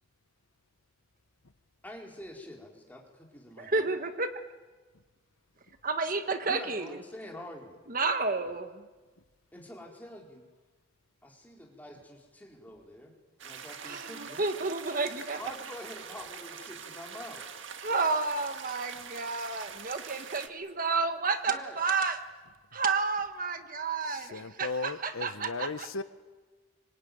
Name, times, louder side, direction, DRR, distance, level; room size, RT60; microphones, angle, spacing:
voice 1, 1.8-3.9 6.4-7.8 9.5-10.5 11.2-13.1 13.4-14.5 15.4-17.6 21.4-21.8, left 1 dB, 10° left, -1 dB, 4.3 m, -46 dB
voice 2, 3.6-4.3 5.8-6.9 7.9-8.8 13.9-15.4 17.8-22.2 22.7-25.7, right 4 dB, 40° right, 7 dB, 1.4 m, -31 dB
sound 1, 13.4-20.5, right 7 dB, 65° right, 1.8 m, -44 dB
voice 3, 24.1-26.0, left 3 dB, 90° left, 11 dB, 1.1 m, -36 dB
25.0 x 24.5 x 9.4 m, 1.3 s
head